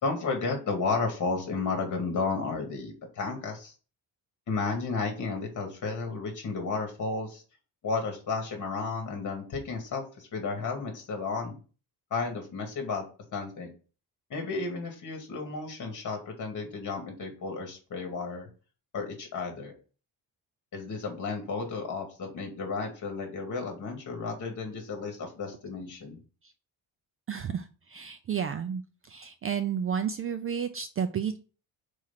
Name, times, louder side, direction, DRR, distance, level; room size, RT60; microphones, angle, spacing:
voice 1, 0.0-3.7 4.5-7.4 7.8-11.6 12.1-13.0 13.3-13.7 14.3-18.5 18.9-19.7 20.7-26.2, left 4 dB, 45° left, 3 dB, 2.3 m, -33 dB
voice 2, 27.3-28.8 29.1-31.4, right 7 dB, 35° right, 9 dB, 0.4 m, -31 dB
4.8 x 4.6 x 5.7 m, 0.37 s
cardioid pair, 165°, 41 cm